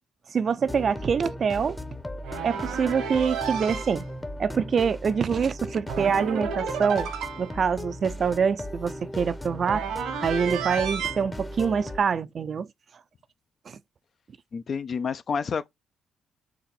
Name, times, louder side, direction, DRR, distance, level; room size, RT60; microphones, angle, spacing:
voice 1, 0.3-1.8 2.4-4.0 4.4-7.1 7.4-9.8 10.2-12.7 13.7-13.8, right 6 dB, 50° right, 0.4 m, -25 dB
sound 1, 0.7-12.0, left 1 dB, 15° left, 0.7 m, -37 dB
sound 2, 2.2-4.0 5.9-7.6 9.6-11.2, right 6 dB, 85° right, 1.3 m, -32 dB
voice 2, 14.5-15.7, left 6 dB, 50° left, 0.4 m, -29 dB
4.1 x 3.0 x 4.3 m
cardioid pair, 90°, 0 cm